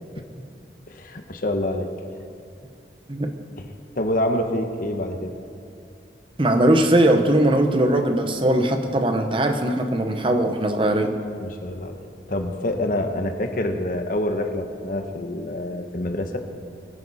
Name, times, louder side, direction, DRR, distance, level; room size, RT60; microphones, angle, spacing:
voice 1, 0.9-1.9 3.6-3.7 3.9-5.3 11.4-12.0 12.3-16.4, left 1 dB, 50° left, 5 dB, 1.1 m, -26 dB
voice 2, 6.4-11.2, right 1 dB, 30° right, 6 dB, 0.9 m, -20 dB
22.5 x 10.5 x 4.1 m, 2.4 s
head